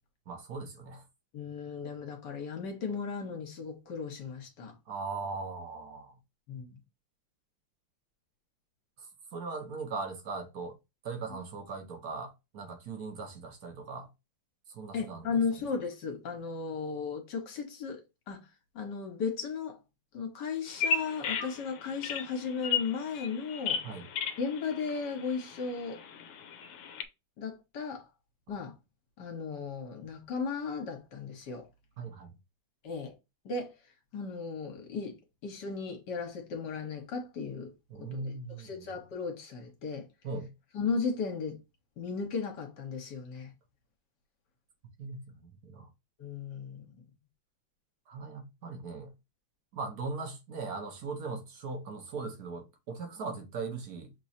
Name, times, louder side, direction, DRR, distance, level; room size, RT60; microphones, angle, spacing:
voice 1, 0.3-1.0 4.9-6.2 9.0-10.8 11.0-14.1 14.7-15.4 23.8-24.1 32.0-32.4 37.9-38.9 40.2-40.5 45.0-45.9 48.1-49.1 49.7-54.1, right 4 dB, 55° right, 1.4 m, -39 dB
voice 2, 1.3-4.7 6.5-6.8 14.9-18.0 18.3-18.4 18.8-19.8 20.1-23.8 24.4-26.0 27.4-28.1 28.5-28.7 29.2-31.7 32.8-33.1 33.5-33.7 34.1-35.1 35.4-37.7 38.0-40.1 40.7-41.6 42.0-43.5 46.2-47.0, left 5 dB, 65° left, 1.7 m, -35 dB
Bird vocalization bird call bird song, 20.7-27.0, left 6 dB, 90° left, 1.4 m, -35 dB
6.0 x 3.1 x 2.7 m
omnidirectional pair, 2.1 m